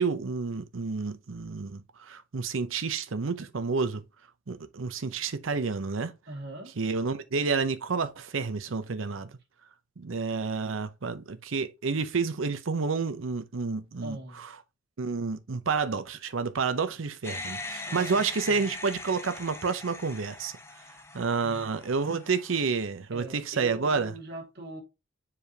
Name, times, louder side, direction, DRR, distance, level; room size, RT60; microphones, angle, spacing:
voice 1, 0.0-4.0 4.5-6.1 6.8-9.3 10.0-14.2 15.0-20.5 21.1-24.1, right 4 dB, 90° right, 0.7 m, -29 dB
voice 2, 6.3-6.7 14.0-14.4 17.8-18.2 18.5-18.7 21.4-21.8 23.1-24.8, right 1 dB, 60° right, 2.0 m, -42 dB
sound 1, 17.2-22.7, left 2 dB, 15° left, 0.8 m, -41 dB
7.0 x 4.9 x 2.8 m
head